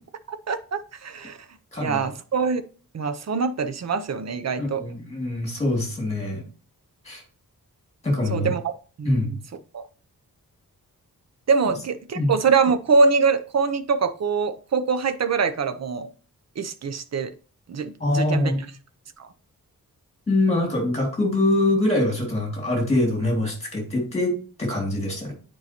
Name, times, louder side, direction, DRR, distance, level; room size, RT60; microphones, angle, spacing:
voice 1, 0.3-1.4 1.8-2.6 2.9-4.8 8.3-8.7 9.0-9.4 9.7-9.8 11.5-16.1 16.6-17.3 17.7-18.5 19.2-19.3, right 5 dB, 50° right, 10 dB, 0.6 m, -24 dB
voice 2, 1.7-2.1 4.6-6.4 7.0-7.2 8.0-8.5 9.0-9.4 12.1-12.3 18.0-18.6 20.3-25.3, left 2 dB, 20° left, 0 dB, 2.5 m, -24 dB
9.4 x 4.6 x 2.9 m, 0.38 s
wide cardioid pair, 180°, 35 cm